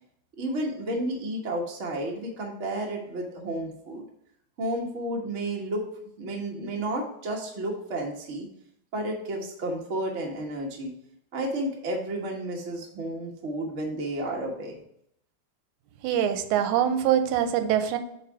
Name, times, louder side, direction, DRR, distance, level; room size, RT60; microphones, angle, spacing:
voice 1, 0.4-4.0 4.6-5.8 6.2-8.5 8.9-10.9 11.3-14.8, right 1 dB, 50° right, 0 dB, 0.8 m, -31 dB
voice 2, 16.0-18.0, right 9 dB, 90° right, 9 dB, 2.0 m, -24 dB
8.1 x 3.3 x 4.7 m, 0.74 s
omnidirectional pair, 3.3 m